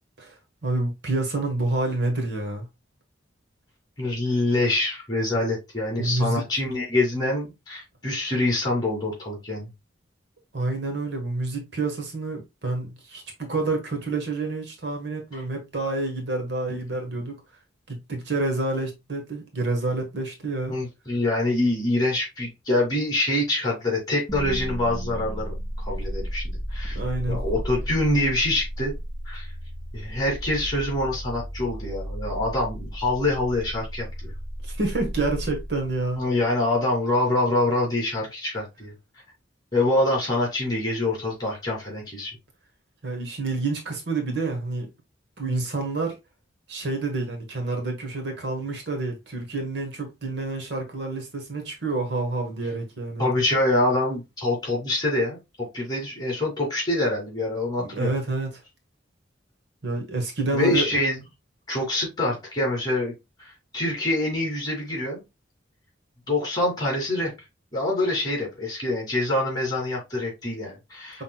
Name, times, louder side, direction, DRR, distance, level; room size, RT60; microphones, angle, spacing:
voice 1, 0.2-2.6 6.0-6.4 10.5-17.4 17.9-20.7 26.9-27.4 34.6-36.2 43.0-44.9 45.4-46.2 46.7-53.3 57.8-58.6 59.8-60.9, right 2 dB, 60° right, 1.4 m, -28 dB
voice 2, 4.0-9.7 20.7-27.0 27.3-28.9 29.3-29.5 29.9-34.3 36.2-38.9 39.7-42.3 53.2-55.4 55.7-58.1 60.5-61.2 61.7-63.1 63.4-65.2 66.3-67.3 67.7-71.2, left 2 dB, 20° left, 2.7 m, -25 dB
sound 1, 24.3-36.4, equal, 5° right, 2.0 m, -34 dB
5.8 x 3.7 x 2.3 m
head